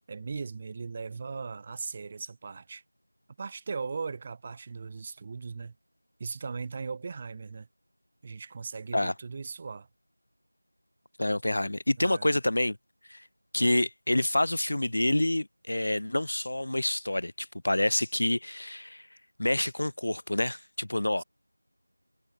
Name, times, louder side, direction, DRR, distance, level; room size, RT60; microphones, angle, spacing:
voice 1, 0.1-2.8 3.4-5.8 6.2-7.7 8.2-9.9 12.0-12.3 13.6-13.9 21.2-21.3, right 4 dB, 10° right, 0.4 m, -38 dB
voice 2, 11.2-12.8 13.1-13.2 13.5-19.1 19.4-21.2, left 1 dB, 45° left, 0.5 m, -27 dB
figure-of-eight pair, 175°, 0 cm